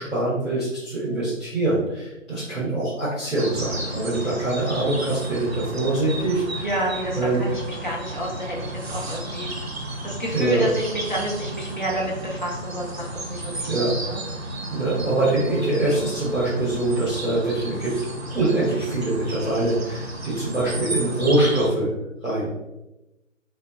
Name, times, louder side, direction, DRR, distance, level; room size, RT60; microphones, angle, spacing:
voice 1, 0.0-6.7 7.1-7.4 10.3-10.6 13.6-13.9 14.7-17.9 18.3-21.9 22.2-22.5, right 2 dB, ahead, -20 dB, 0.6 m, -24 dB
sound 1, 3.4-21.7, right 1 dB, 50° right, 0.6 m, -33 dB
voice 2, 6.6-9.5 10.0-14.2, equal, 35° left, -5 dB, 0.7 m, -29 dB
3.7 x 2.1 x 2.9 m, 0.96 s
figure-of-eight pair, 155°, 40 cm